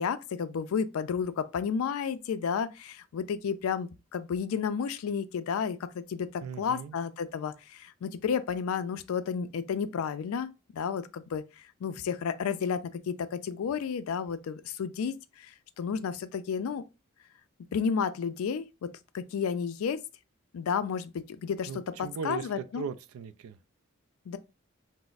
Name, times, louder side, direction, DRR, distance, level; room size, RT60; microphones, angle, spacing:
voice 1, 0.0-11.4 11.8-15.5 15.8-16.8 17.7-18.9 19.1-20.0 20.5-21.7 22.0-22.9 24.3-24.4, left 6 dB, 80° left, 0.3 m, -32 dB
voice 2, 6.4-7.0 21.7-23.6, right 6 dB, 80° right, 0.3 m, -38 dB
2.4 x 2.0 x 3.9 m
head